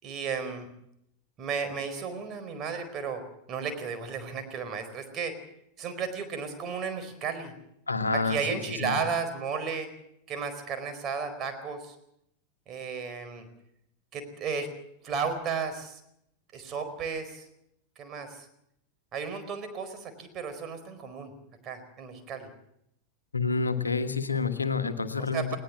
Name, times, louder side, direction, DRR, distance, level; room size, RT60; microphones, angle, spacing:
voice 1, 0.0-0.7 1.4-3.2 3.5-5.4 5.8-7.5 8.1-9.9 10.3-11.9 12.7-13.5 14.1-14.7 15.0-16.0 16.5-17.4 18.0-18.5 19.1-21.3 21.6-22.5 25.2-25.6, right 5 dB, 30° right, 7 dB, 4.5 m, -34 dB
voice 2, 7.9-9.0 23.3-25.5, left 4 dB, 80° left, 9 dB, 1.4 m, -28 dB
20.5 x 18.5 x 7.2 m, 0.76 s
figure-of-eight pair, 90°, 0 cm